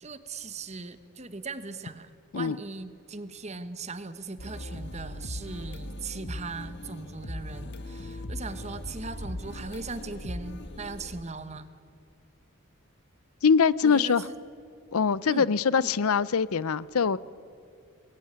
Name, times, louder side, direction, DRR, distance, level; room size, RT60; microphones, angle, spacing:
voice 1, 0.0-11.7 13.8-14.3 15.3-15.5 15.8-15.9, right 3 dB, 30° right, 1.2 m, -39 dB
sound 1, 4.4-11.2, left 1 dB, 50° left, 1.5 m, -39 dB
voice 2, 13.4-14.3 14.9-17.2, left 6 dB, 80° left, 0.6 m, -23 dB
26.0 x 21.0 x 9.6 m
head